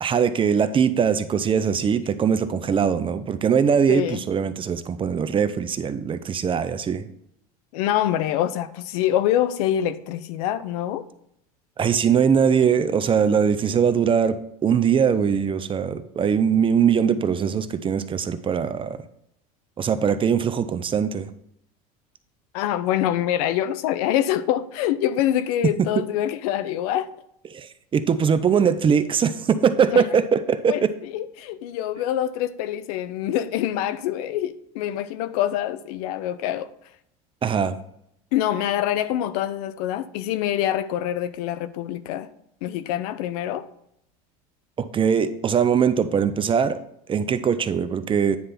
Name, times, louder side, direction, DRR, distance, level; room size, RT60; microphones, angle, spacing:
voice 1, 0.0-7.0 11.8-19.0 19.8-21.3 27.5-27.7 27.9-30.9 37.4-37.7 44.8-46.8 47.1-48.4, right 7 dB, 25° right, 0.6 m, -21 dB
voice 2, 3.9-4.2 7.7-11.1 22.5-27.1 29.9-30.1 30.7-30.8 31.1-36.7 38.3-42.3 42.6-43.7, left 11 dB, 75° left, 0.6 m, -25 dB
9.5 x 3.3 x 5.9 m
supercardioid pair, 100°, 19 cm